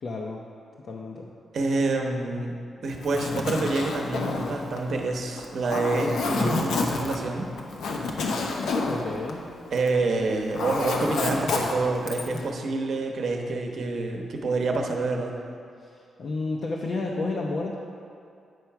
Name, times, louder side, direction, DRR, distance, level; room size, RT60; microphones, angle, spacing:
voice 1, 0.0-0.4 0.8-1.3 8.9-9.5 15.8-17.7, left 3 dB, 50° left, -2 dB, 0.7 m, -31 dB
voice 2, 1.5-2.5 2.8-7.5 9.7-15.3, right 3 dB, 55° right, 2 dB, 0.9 m, -27 dB
Zipper (clothing), 2.9-10.0 10.3-12.4, left 3 dB, 85° left, 0.9 m, -29 dB
9.4 x 4.4 x 5.8 m, 2.5 s
wide cardioid pair, 145°, 0 cm